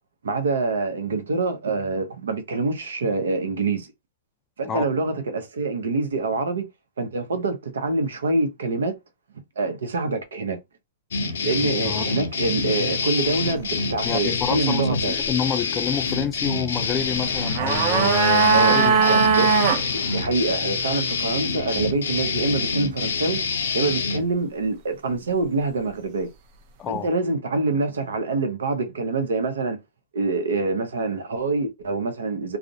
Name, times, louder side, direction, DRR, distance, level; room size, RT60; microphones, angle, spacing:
voice 1, 0.2-3.9 4.6-6.7 7.0-8.9 9.6-10.6 11.4-15.2 18.5-23.4 23.7-26.3 26.9-29.8 30.1-32.6, right 3 dB, 90° right, 0.6 m, -25 dB
sound 1, 11.1-24.2, left 4 dB, 85° left, 0.5 m, -26 dB
voice 2, 11.6-12.1 14.0-19.2 26.8-27.1, left 8 dB, 25° left, 0.3 m, -29 dB
sound 2, 17.2-19.8 20.1-20.2, right 5 dB, 50° right, 0.5 m, -19 dB
2.4 x 2.0 x 2.6 m
hypercardioid pair, 135°, 0 cm